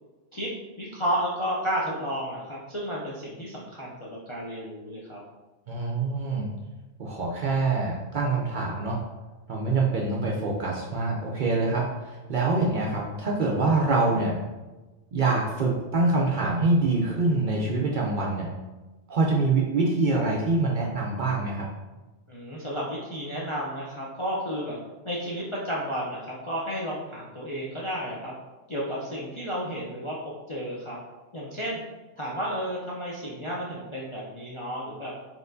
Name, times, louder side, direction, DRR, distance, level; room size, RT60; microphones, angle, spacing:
voice 1, 0.8-5.2 22.3-24.8 25.0-28.3 28.7-30.1 30.5-31.0 31.3-31.8 32.2-35.1, equal, 45° left, -6 dB, 0.4 m, -32 dB
voice 2, 5.7-6.5 7.0-9.0 9.5-14.4 15.1-18.5 19.1-21.7, right 3 dB, 60° right, -2 dB, 0.5 m, -25 dB
4.3 x 2.9 x 2.5 m, 1.2 s
omnidirectional pair, 1.2 m